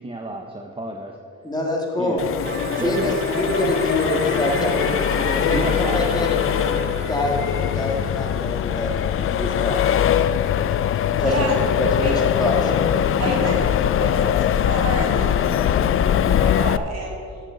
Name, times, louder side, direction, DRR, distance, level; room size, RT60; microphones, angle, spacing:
voice 1, 0.0-1.5 2.0-2.3 2.8-3.2 5.5-6.1, right 2 dB, 15° right, 2 dB, 0.8 m, -31 dB
voice 2, 1.4-2.2 2.7-6.8 7.1-7.4 7.7-9.8 11.2-11.5 11.8-12.7, left 1 dB, 15° left, -1 dB, 1.9 m, -25 dB
Accelerating revving vroom, 2.2-16.8, left 9 dB, 45° left, 0.4 m, -21 dB
sound 1, 2.4-9.3, right 8 dB, 35° right, 0.4 m, -37 dB
voice 3, 11.2-11.5 12.0-12.1 13.2-13.6 13.8-17.2, right 2 dB, 60° right, -2 dB, 2.6 m, -30 dB
11.0 x 9.9 x 3.9 m, 2.6 s
cardioid pair, 90°, 30 cm